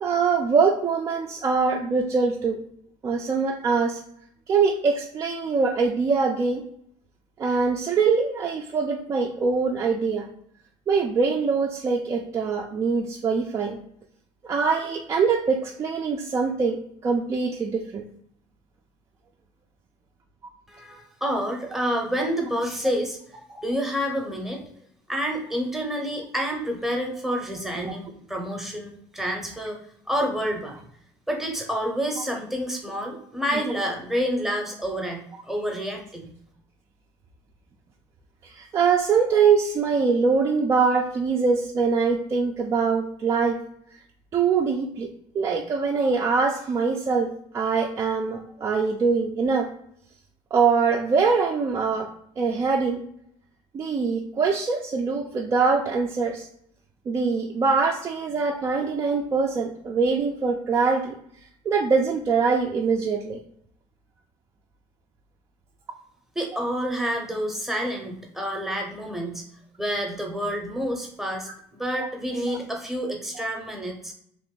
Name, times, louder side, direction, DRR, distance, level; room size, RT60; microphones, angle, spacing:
voice 1, 0.0-2.6 3.0-4.0 4.5-6.6 7.4-10.3 10.9-13.8 14.4-18.0 23.5-23.6 27.8-27.9 38.4-43.6 44.3-49.7 50.5-52.1 52.4-53.0 53.7-56.5 57.1-61.1 61.7-63.4 72.0-72.1, right 5 dB, 30° right, 0 dB, 0.4 m, -23 dB
voice 2, 20.7-23.2 23.6-24.6 25.1-29.8 30.1-30.8 31.3-36.3 66.4-69.4 69.8-74.1, equal, 5° right, 1 dB, 0.7 m, -28 dB
3.0 x 2.5 x 3.7 m, 0.69 s
cardioid pair, 125°, 11 cm